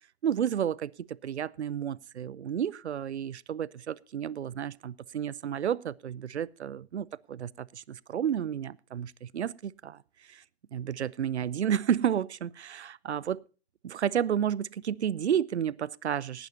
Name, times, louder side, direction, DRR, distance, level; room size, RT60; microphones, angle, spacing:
voice 1, 0.2-10.4 10.7-13.4 13.8-16.5, right 9 dB, 75° right, 0.6 m, -31 dB
18.0 x 12.0 x 2.7 m
figure-of-eight pair, 110°, 34 cm